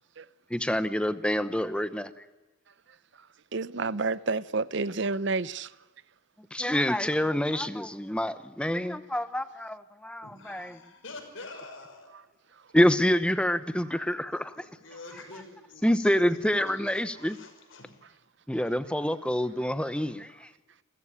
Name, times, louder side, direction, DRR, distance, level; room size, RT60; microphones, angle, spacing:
voice 1, 0.5-2.1 6.5-10.8 12.7-14.6 15.8-17.4 18.5-20.5, equal, 5° left, 0.9 m, -27 dB
voice 2, 3.5-5.7, right 3 dB, 60° right, 0.7 m, -30 dB
voice 3, 10.2-12.2 14.5-18.1, left 3 dB, 70° left, 5.8 m, -47 dB
27.5 x 14.5 x 9.9 m
head